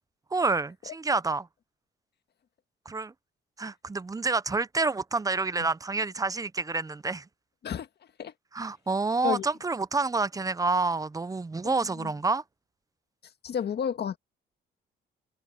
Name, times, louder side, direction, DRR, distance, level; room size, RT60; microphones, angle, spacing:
voice 1, 0.3-1.5 2.9-3.1 3.6-7.2 8.5-12.4, right 3 dB, 15° right, 0.7 m, -28 dB
voice 2, 11.6-12.1 13.4-14.2, left 8 dB, 55° left, 1.7 m, -32 dB
cardioid pair, 90°, 20 cm